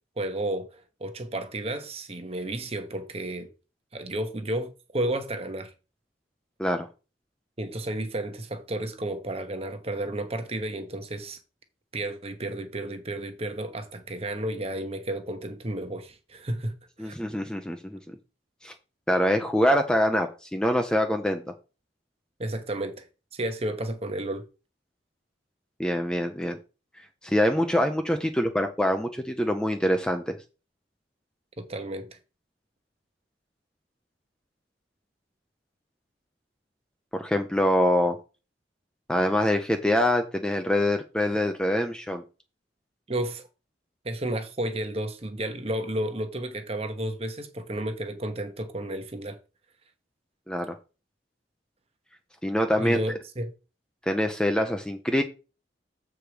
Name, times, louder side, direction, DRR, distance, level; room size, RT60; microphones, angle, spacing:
voice 1, 0.2-3.5 3.9-5.7 7.6-11.4 11.9-17.1 22.4-23.1 23.3-24.4 31.6-32.2 43.1-43.5 44.0-49.4 52.8-53.5, right 1 dB, 35° right, 1.1 m, -32 dB
voice 2, 17.0-18.1 18.6-18.7 19.1-21.4 25.8-26.6 27.2-30.4 37.1-38.2 39.1-42.2 50.5-50.8 52.4-53.2 54.1-55.2, left 1 dB, 5° left, 0.6 m, -25 dB
7.6 x 4.8 x 5.0 m
head